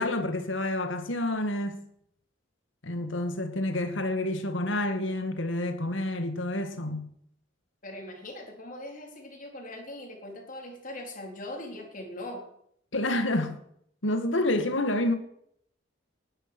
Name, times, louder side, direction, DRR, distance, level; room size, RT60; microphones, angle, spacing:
voice 1, 0.0-1.9 2.8-7.1 12.9-13.6 14.0-15.1, left 1 dB, 75° left, 2.2 m, -28 dB
voice 2, 7.8-12.4, left 1 dB, 40° left, 4.0 m, -41 dB
19.5 x 11.5 x 6.3 m
head